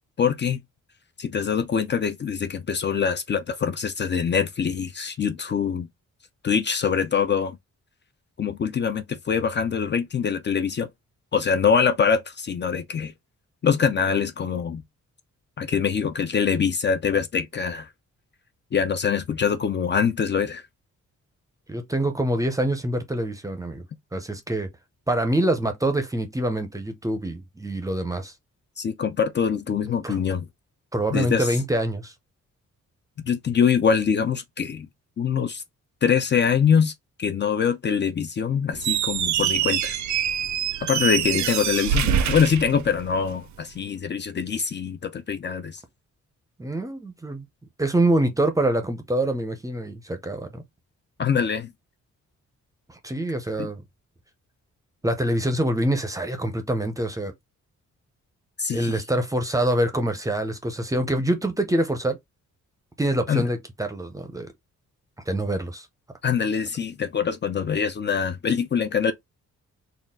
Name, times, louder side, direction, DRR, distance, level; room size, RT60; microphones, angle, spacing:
voice 1, 0.2-0.6 1.2-5.9 6.4-7.6 8.4-10.9 11.3-13.1 13.6-14.8 15.6-17.9 18.7-20.6 28.8-30.5 31.1-31.6 33.2-34.9 35.2-35.6 36.0-36.9 37.2-40.0 40.8-45.8 51.2-51.7 53.6-53.7 58.6-59.0 63.3-63.5 66.2-69.1, left 6 dB, 40° left, 0.5 m, -24 dB
voice 2, 21.7-23.8 24.1-24.7 25.1-28.3 30.0-30.2 30.9-32.1 41.3-41.5 46.6-47.5 47.8-50.6 52.9-53.8 55.0-57.3 58.7-62.2 63.0-64.5 65.3-65.9, right 1 dB, 10° right, 0.6 m, -25 dB
Squeak, 38.7-43.4, right 9 dB, 70° right, 0.6 m, -25 dB
4.1 x 2.3 x 3.5 m
wide cardioid pair, 170°, 30 cm